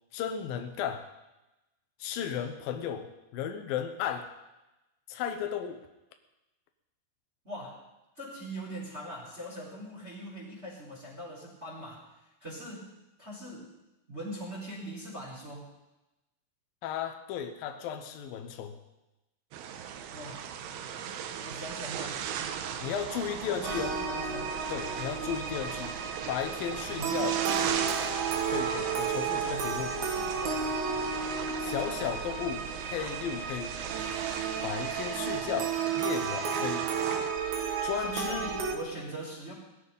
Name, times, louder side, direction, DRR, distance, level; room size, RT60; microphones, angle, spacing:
voice 1, 0.1-1.1 2.0-4.3 5.1-5.8 16.8-18.8 22.8-23.9 24.7-26.0 26.3-27.4 28.5-29.9 31.6-33.8 34.6-36.9 37.8-38.6, left 8 dB, 80° left, 6 dB, 2.0 m, -35 dB
voice 2, 7.4-7.8 8.2-12.0 12.4-12.9 13.2-13.7 14.1-15.7 20.1-20.5 21.4-22.2 23.4-24.5 26.9-27.9 29.4-30.6 38.0-39.5, right 1 dB, 15° right, -4 dB, 3.5 m, -42 dB
sound 1, 19.5-37.3, right 8 dB, 80° right, 3.4 m, -38 dB
sound 2, 23.6-38.8, right 6 dB, 60° right, 3.0 m, -33 dB
18.5 x 14.0 x 5.4 m, 0.99 s
omnidirectional pair, 5.6 m